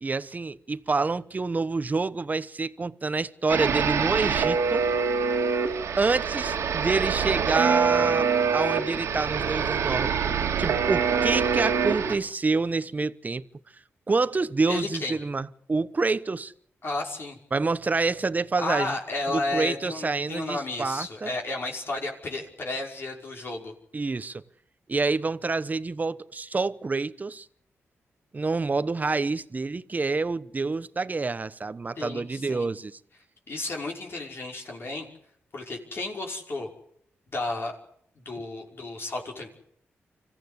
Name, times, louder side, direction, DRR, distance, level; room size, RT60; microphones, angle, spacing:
voice 1, 0.0-4.9 6.0-13.4 14.1-16.5 17.5-19.0 19.3-21.3 23.9-24.4 24.9-27.5 28.3-32.9, right 3 dB, 35° right, 1.0 m, -27 dB
sound 1, 3.5-12.2, right 6 dB, 80° right, 2.2 m, -25 dB
voice 2, 14.7-15.2 16.8-17.4 18.6-23.7 32.0-32.7 33.5-35.1 35.5-36.7 37.3-37.8 38.2-39.5, left 2 dB, 50° left, 5.4 m, -32 dB
25.5 x 15.0 x 8.3 m
cardioid pair, 65°, 5 cm